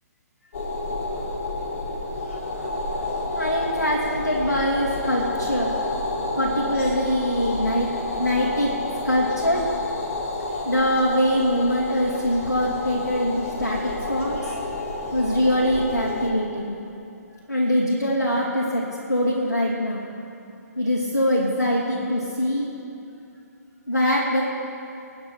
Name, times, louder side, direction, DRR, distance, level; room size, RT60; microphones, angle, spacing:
sound 1, 0.5-16.3, left 2 dB, 50° left, 3.1 m, -29 dB
voice 1, 3.4-5.8 6.4-8.7 9.0-9.6 10.6-13.8 14.1-14.6 15.1-16.8 17.5-20.1 20.8-22.7 23.9-24.4, equal, 85° left, -5 dB, 2.7 m, -23 dB
25.5 x 9.6 x 4.6 m, 2.8 s
figure-of-eight pair, 130°, 9 cm